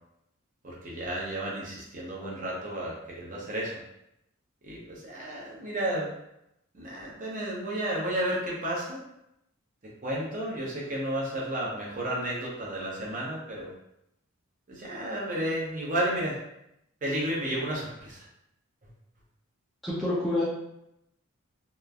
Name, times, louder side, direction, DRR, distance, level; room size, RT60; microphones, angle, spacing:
voice 1, 0.6-3.8 4.6-6.1 6.7-9.0 10.0-13.7 14.7-16.4 17.0-18.3, right 1 dB, 35° right, -4 dB, 0.6 m, -32 dB
voice 2, 19.8-20.4, left 1 dB, ahead, -9 dB, 0.4 m, -27 dB
2.9 x 2.4 x 2.3 m, 0.83 s
head